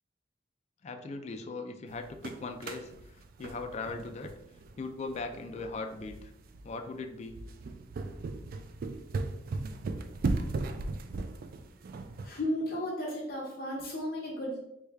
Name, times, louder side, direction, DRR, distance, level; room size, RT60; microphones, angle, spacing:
voice 1, 0.8-4.3 4.8-6.3 6.6-7.4, left 3 dB, 35° left, 5 dB, 0.3 m, -39 dB
sound 1, 1.9-12.3, right 3 dB, 50° right, 0.3 m, -37 dB
voice 2, 12.2-14.6, equal, 55° left, -4 dB, 1.1 m, -34 dB
4.6 x 2.2 x 3.3 m, 0.82 s
head